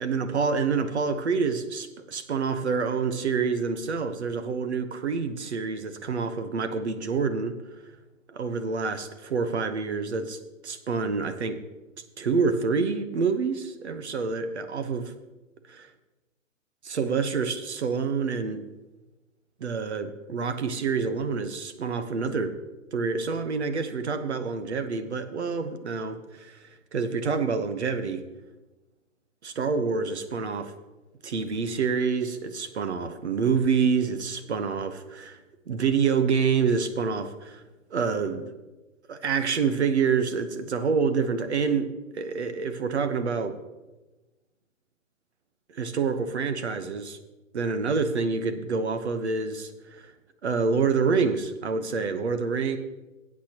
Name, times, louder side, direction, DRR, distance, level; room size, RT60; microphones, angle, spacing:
voice 1, 0.0-7.6 8.3-11.6 12.2-15.1 15.7-15.9 16.8-18.6 19.6-22.6 22.9-28.2 29.4-30.7 31.2-35.4 35.7-37.6 37.9-38.5 39.1-43.5 45.7-47.2 47.5-50.1 50.4-52.8, right 5 dB, 55° right, 9 dB, 1.0 m, -27 dB
17.5 x 8.5 x 2.9 m, 1.1 s
hypercardioid pair, 175°, 39 cm